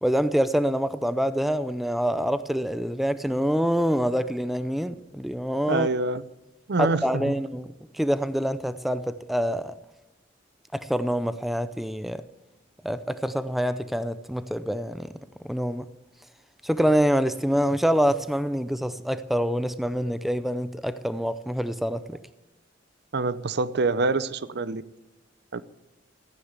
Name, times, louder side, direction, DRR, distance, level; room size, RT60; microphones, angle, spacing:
voice 1, 0.0-5.9 6.8-7.7 7.9-9.7 10.7-12.2 12.8-15.1 15.4-15.9 16.6-22.2, equal, ahead, 0.5 m, -26 dB
voice 2, 5.7-6.2 6.7-7.3 23.1-24.8 25.5-25.6, right 3 dB, 60° right, 0.6 m, -25 dB
15.0 x 9.6 x 8.1 m
head